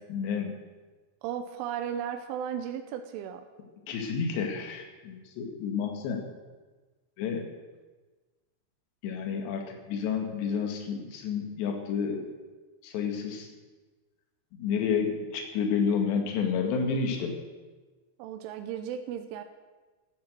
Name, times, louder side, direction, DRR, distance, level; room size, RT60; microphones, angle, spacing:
voice 1, 0.1-0.6 3.9-6.2 7.2-7.5 9.0-12.4 12.8-13.5 14.5-17.4, left 6 dB, 70° left, 4 dB, 3.9 m, -30 dB
voice 2, 1.2-3.5 18.2-19.4, right 9 dB, 90° right, 7 dB, 3.3 m, -35 dB
12.5 x 12.0 x 7.8 m, 1.3 s
omnidirectional pair, 5.6 m